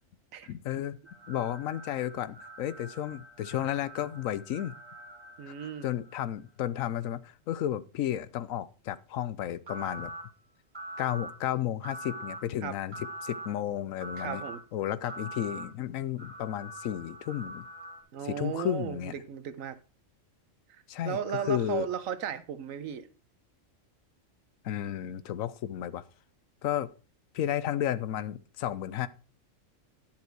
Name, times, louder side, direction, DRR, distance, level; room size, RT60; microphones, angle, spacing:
voice 1, 0.4-1.0 1.3-4.8 5.5-10.1 11.0-14.4 14.7-17.6 18.2-19.1 20.9-21.2 21.5-21.9 24.6-26.0 26.6-26.9 27.3-29.1, left 11 dB, 80° left, 1.1 m, -33 dB
sound 1, 1.0-6.4 9.7-10.2 10.7-11.3 11.8-12.4 12.9-13.5 14.0-14.6 15.1-15.6 16.2-18.0, right 1 dB, 20° right, 2.2 m, -44 dB
voice 2, 5.4-5.9 12.6-12.8 14.2-14.6 18.1-19.8 20.7-23.1, right 8 dB, 75° right, 1.2 m, -35 dB
10.5 x 7.4 x 4.5 m
omnidirectional pair, 1.4 m